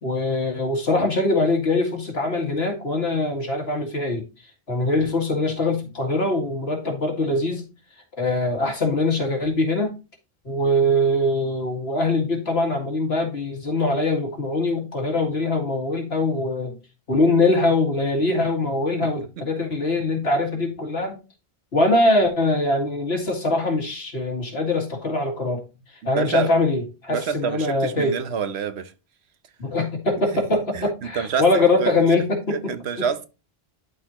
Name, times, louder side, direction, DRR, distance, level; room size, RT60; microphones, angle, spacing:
voice 1, 0.0-4.2 4.7-7.6 8.2-9.9 10.4-16.8 17.1-21.2 21.7-25.6 26.1-28.1 29.6-32.7 33.0-33.1, left 2 dB, 80° left, 2.2 m, -22 dB
voice 2, 19.0-19.4 26.0-26.5 27.1-28.9 30.3-32.1 32.5-33.3, right 7 dB, 85° right, 1.1 m, -28 dB
12.0 x 4.3 x 2.9 m
omnidirectional pair, 1.1 m